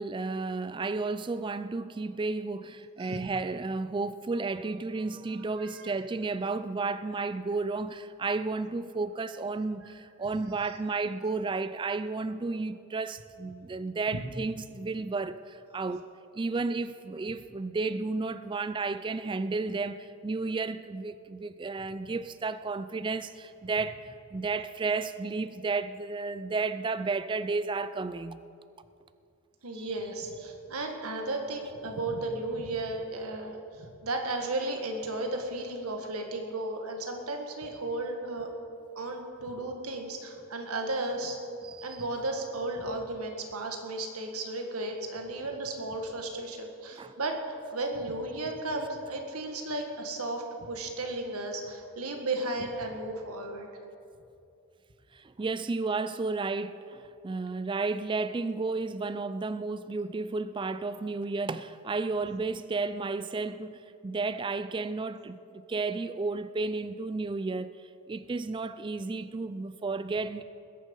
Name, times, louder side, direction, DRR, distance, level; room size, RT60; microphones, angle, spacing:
voice 1, 0.0-16.1 16.3-28.4 29.8-29.9 41.6-42.0 47.0-47.2 55.1-65.4 65.7-67.7 68.1-70.4, right 3 dB, 20° right, 0.3 m, -32 dB
voice 2, 29.6-38.5 39.0-41.4 41.8-53.7, right 2 dB, 85° right, 1.9 m, -34 dB
20.5 x 10.5 x 5.5 m
head